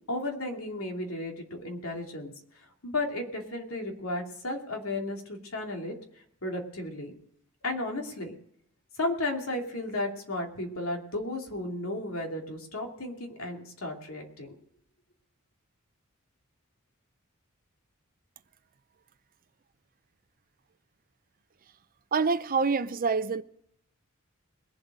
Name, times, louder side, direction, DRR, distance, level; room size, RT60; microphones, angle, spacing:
voice 1, 0.1-2.3 2.8-5.9 6.4-7.1 7.6-8.3 9.0-14.5, left 2 dB, 70° left, 2.8 m, -34 dB
voice 2, 22.1-23.4, right 4 dB, 40° right, 0.6 m, -26 dB
21.5 x 7.7 x 4.9 m
head